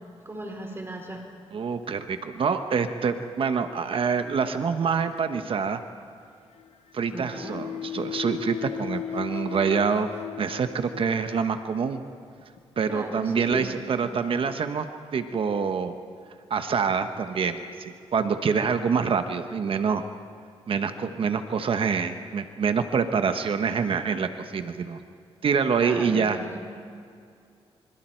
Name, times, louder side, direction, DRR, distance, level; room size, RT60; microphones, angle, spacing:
voice 1, 0.2-1.2 7.1-7.6 12.9-14.1 25.8-26.6, right 1 dB, 20° right, 2 dB, 3.9 m, -37 dB
voice 2, 1.5-5.8 6.9-10.1 10.4-12.0 12.8-14.9 15.1-16.0 16.5-20.0 20.7-25.0 25.4-26.4, right 6 dB, 55° right, 8 dB, 1.1 m, -26 dB
sound 1, 3.6-4.6 6.6-11.7 12.4-12.6 13.4-13.5, left 10 dB, 70° left, 0.9 m, -37 dB
27.0 x 26.0 x 4.6 m, 2.4 s
cardioid pair, 85°, 11 cm